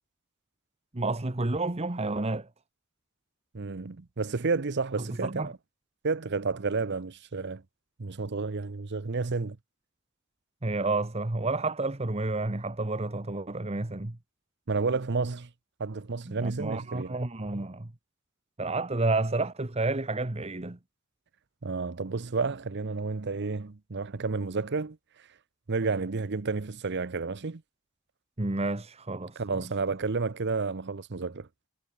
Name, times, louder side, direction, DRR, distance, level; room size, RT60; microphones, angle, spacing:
voice 1, 0.9-2.5 5.0-5.5 10.6-14.2 16.3-17.9 18.6-20.8 28.4-29.7, right 2 dB, 30° right, 1.1 m, -30 dB
voice 2, 3.5-5.5 6.0-7.6 8.0-9.6 14.7-15.5 15.8-17.2 21.6-25.0 25.7-27.6 29.4-31.5, right 4 dB, 50° right, 0.8 m, -31 dB
head